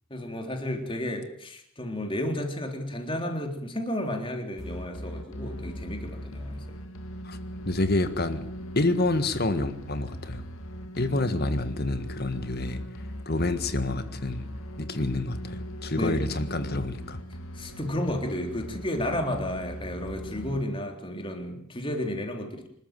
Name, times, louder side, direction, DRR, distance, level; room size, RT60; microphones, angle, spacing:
voice 1, 0.1-6.6 15.9-16.2 17.5-22.7, left 1 dB, 25° left, 4 dB, 3.8 m, -32 dB
sound 1, 4.6-20.6, equal, 75° left, 2.7 m, -39 dB
voice 2, 7.7-8.4 8.8-10.4 11.0-12.8 13.3-14.5 14.8-17.2, left 2 dB, 45° left, 10 dB, 1.7 m, -28 dB
26.5 x 13.5 x 9.2 m, 0.69 s
head